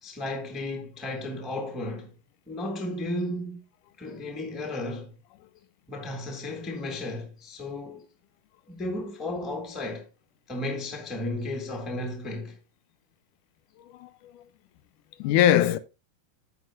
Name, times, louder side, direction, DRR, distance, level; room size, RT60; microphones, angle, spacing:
voice 1, 0.0-2.1 2.5-3.6 4.0-5.1 5.9-8.0 8.7-10.1 10.5-12.6, left 1 dB, ahead, 0.9 m, -34 dB
voice 2, 13.9-14.4 15.2-15.8, left 11 dB, 85° left, 2.2 m, -22 dB
14.5 x 5.7 x 2.3 m
omnidirectional pair, 3.7 m